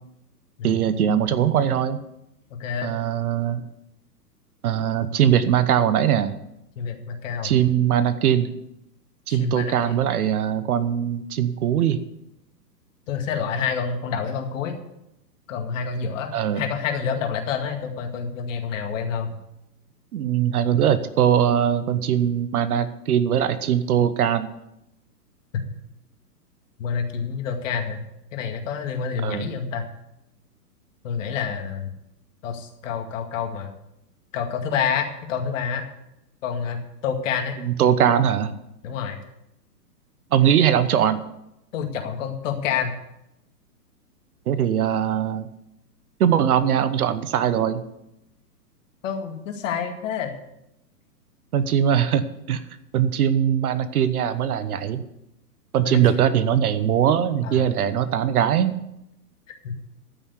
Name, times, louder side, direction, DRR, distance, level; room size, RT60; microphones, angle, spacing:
voice 1, 0.6-2.0 2.8-3.6 4.6-6.3 7.4-8.5 9.3-12.0 16.3-16.7 20.1-24.5 29.2-29.5 37.6-38.5 40.3-41.2 44.5-45.5 46.2-47.8 51.5-52.6 52.9-55.0 55.7-58.7, right 9 dB, 60° right, 13 dB, 1.1 m, -21 dB
voice 2, 2.5-2.9 6.8-7.5 9.3-10.0 13.1-14.8 15.5-19.3 26.8-28.0 28.3-29.9 31.0-31.9 32.4-33.7 34.3-35.9 36.4-37.6 38.8-39.2 41.7-42.9 49.0-50.3 55.8-56.0 57.4-57.7 59.5-59.8, left 6 dB, 50° left, 5 dB, 2.1 m, -28 dB
13.5 x 6.0 x 8.2 m, 0.85 s
hypercardioid pair, 135°, 49 cm